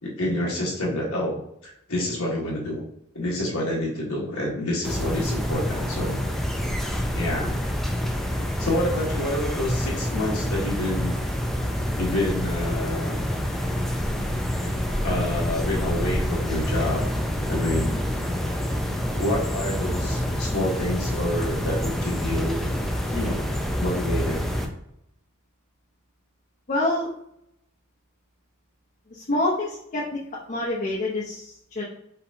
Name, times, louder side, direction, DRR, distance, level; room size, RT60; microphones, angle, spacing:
voice 1, 0.0-2.8 3.1-6.2 7.1-7.5 8.6-11.2 12.0-13.2 15.0-17.1 17.5-18.0 19.2-22.6 23.1-23.5 23.8-24.5, left 1 dB, 70° left, -4 dB, 1.4 m, -28 dB
sound 1, 4.8-24.7, equal, ahead, 0.5 m, -27 dB
voice 2, 26.7-27.1 29.1-30.2 30.5-31.8, left 2 dB, 40° left, -6 dB, 0.8 m, -26 dB
5.7 x 3.1 x 2.7 m, 0.76 s
head